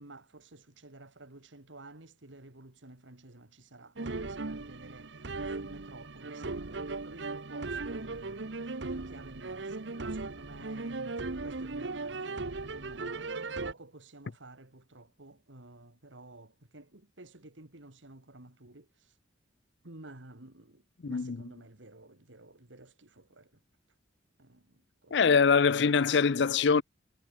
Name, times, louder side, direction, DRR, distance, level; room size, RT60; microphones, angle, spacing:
voice 1, 0.0-19.1 19.8-23.5 24.4-25.3, right 2 dB, 85° right, 2.6 m, -52 dB
sound 1, 4.0-13.7, right 3 dB, 70° right, 1.1 m, -37 dB
voice 2, 21.0-21.4 25.1-26.8, left 5 dB, 65° left, 0.5 m, -23 dB
head